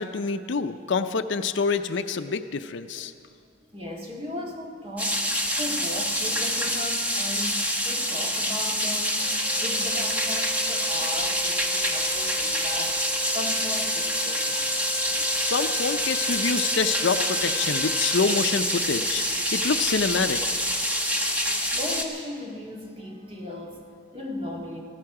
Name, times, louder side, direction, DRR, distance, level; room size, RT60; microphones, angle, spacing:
voice 1, 0.0-3.1 15.1-20.6, left 5 dB, 60° left, 9 dB, 0.5 m, -27 dB
voice 2, 3.7-14.7 16.6-16.8 21.6-24.8, left 1 dB, 25° right, -1 dB, 1.8 m, -37 dB
sound 1, 5.0-22.0, equal, 5° right, 1.1 m, -26 dB
Wind instrument woodwind instrument, 9.2-18.3, left 2 dB, 30° left, 3.8 m, -40 dB
19.0 x 14.5 x 4.8 m, 2.3 s
head